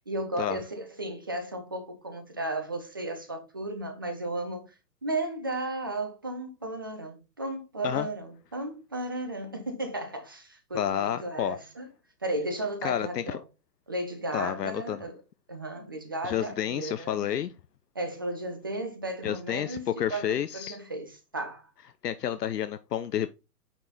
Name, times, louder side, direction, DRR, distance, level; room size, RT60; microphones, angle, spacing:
voice 1, 0.1-4.7 5.0-11.9 12.2-13.4 13.9-15.2 15.5-17.4 17.9-21.7, right 1 dB, 15° right, 0.4 m, -34 dB
voice 2, 10.7-11.6 12.8-13.4 14.3-15.0 16.2-17.5 19.2-20.8 22.0-23.3, left 10 dB, 75° left, 0.7 m, -30 dB
8.8 x 3.8 x 4.0 m
hypercardioid pair, 130°, 48 cm